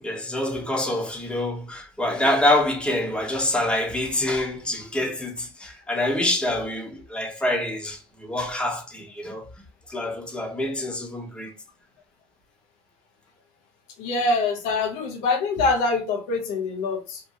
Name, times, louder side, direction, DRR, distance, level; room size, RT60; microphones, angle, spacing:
voice 1, 0.0-9.5 9.9-11.5, left 1 dB, 10° left, 1.0 m, -26 dB
voice 2, 14.0-17.2, left 3 dB, 80° left, 0.7 m, -24 dB
2.8 x 2.2 x 2.7 m
supercardioid pair, 80°, 10 cm